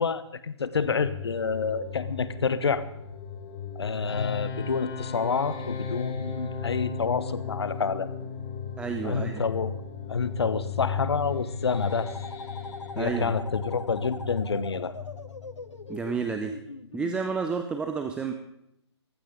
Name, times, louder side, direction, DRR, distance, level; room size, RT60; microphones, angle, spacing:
voice 1, 0.0-2.8 3.7-8.1 9.0-9.8 10.1-12.1 13.0-14.9, left 5 dB, 65° left, 14 dB, 1.1 m, -28 dB
sound 1, 0.7-16.2, left 8 dB, 35° left, 4.5 m, -38 dB
sound 2, 4.0-16.9, left 4 dB, 15° left, 4.6 m, -39 dB
voice 2, 8.8-9.4 13.0-13.3 15.9-16.5 16.9-18.3, right 5 dB, 5° right, 5 dB, 0.6 m, -30 dB
sound 3, 11.7-17.2, left 2 dB, 85° left, 0.8 m, -41 dB
20.0 x 14.5 x 3.8 m, 0.79 s
figure-of-eight pair, 135°, 15 cm